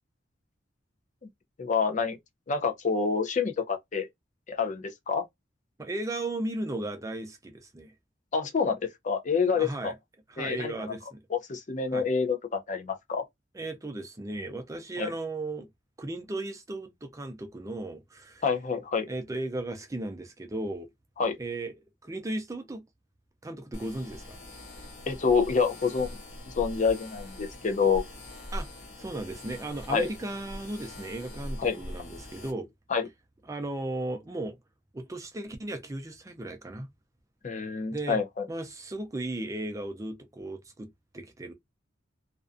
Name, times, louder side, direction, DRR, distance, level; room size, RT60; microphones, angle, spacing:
voice 1, 1.6-2.2 2.5-4.1 4.5-5.2 8.3-8.8 9.0-9.9 10.4-10.9 11.3-13.2 15.0-15.1 18.4-19.1 21.2-21.4 25.1-26.2 26.5-28.0 29.9-30.1 31.6-31.7 32.9-33.0 37.4-38.5, left 5 dB, 45° left, 0.5 m, -27 dB
voice 2, 5.8-7.9 9.5-10.0 10.3-11.2 11.9-12.0 13.5-15.7 16.0-18.4 19.1-20.9 21.4-21.7 22.0-22.8 23.4-24.4 28.5-28.7 29.0-32.7 33.5-34.6 34.9-36.9 37.9-38.2 38.5-40.9 41.1-41.5, right 2 dB, 15° right, 0.4 m, -36 dB
sound 1, 23.7-32.5, left 1 dB, 75° left, 1.4 m, -42 dB
2.4 x 2.1 x 2.5 m
head